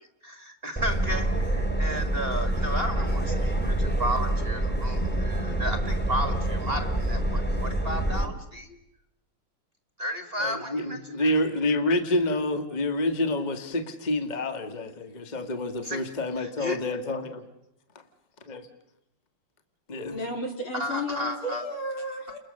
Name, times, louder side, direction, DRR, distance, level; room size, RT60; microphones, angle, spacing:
voice 1, 0.0-8.8 10.0-11.3 15.8-16.0 16.4-16.8 20.7-21.6, equal, 30° right, 7 dB, 1.6 m, -33 dB
Subway metro underground, 0.8-8.3, right 1 dB, 5° left, 2.2 m, -27 dB
voice 2, 10.4-17.4 18.5-18.7 19.9-20.2, left 1 dB, 20° left, 7 dB, 1.6 m, -28 dB
voice 3, 20.1-22.4, left 1 dB, 70° left, 2 dB, 4.4 m, -33 dB
30.0 x 21.5 x 6.6 m, 0.85 s
omnidirectional pair, 2.4 m